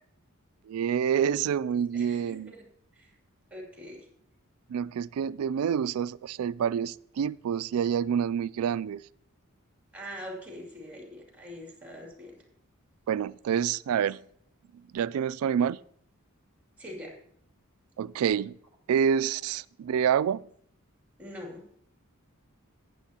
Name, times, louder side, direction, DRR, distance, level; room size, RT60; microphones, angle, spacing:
voice 1, 0.7-2.5 4.7-9.0 13.1-14.2 14.9-15.8 18.0-18.5 18.9-20.4, right 8 dB, 85° right, 19 dB, 0.3 m, -27 dB
voice 2, 1.9-2.6 2.9-3.1 3.5-4.1 9.9-12.4 16.8-17.2 21.2-21.6, equal, 5° right, 0 dB, 2.6 m, -43 dB
14.5 x 9.8 x 2.8 m, 0.65 s
head